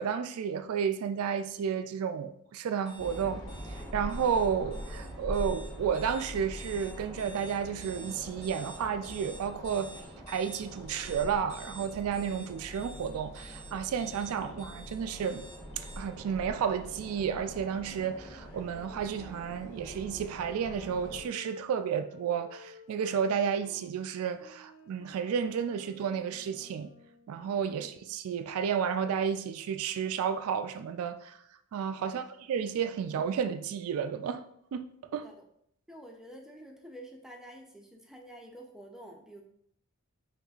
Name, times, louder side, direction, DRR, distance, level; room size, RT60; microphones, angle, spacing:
voice 1, 0.0-10.0 10.3-15.5 15.8-26.9 27.3-31.4 31.7-34.4 34.7-34.9 35.1-35.3, right 7 dB, 75° right, 0.3 m, -32 dB
sound 1, 2.9-16.0, right 2 dB, 65° left, 1.2 m, -50 dB
sound 2, 3.0-21.2, equal, 20° left, 0.9 m, -44 dB
sound 3, 17.2-23.9 24.4-27.4, left 3 dB, 40° left, 0.6 m, -54 dB
voice 2, 32.0-32.3 35.1-35.5 35.9-39.4, right 1 dB, 5° right, 0.5 m, -49 dB
5.4 x 3.2 x 2.4 m
head